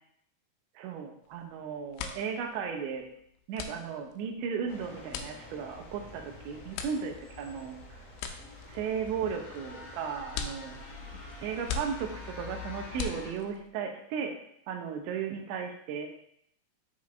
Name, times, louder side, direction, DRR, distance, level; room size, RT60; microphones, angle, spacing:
voice 1, 0.8-3.0 3.5-7.8 8.7-10.8 11.4-14.3 14.7-16.1, right 6 dB, 85° right, 4 dB, 3.1 m, -35 dB
sound 1, 1.3-1.5 1.8-13.7, left 6 dB, 85° left, 2.8 m, -41 dB
sound 2, 4.7-13.3, left 3 dB, 35° left, 3.2 m, -46 dB
7.6 x 5.7 x 2.5 m, 0.71 s
omnidirectional pair, 5.1 m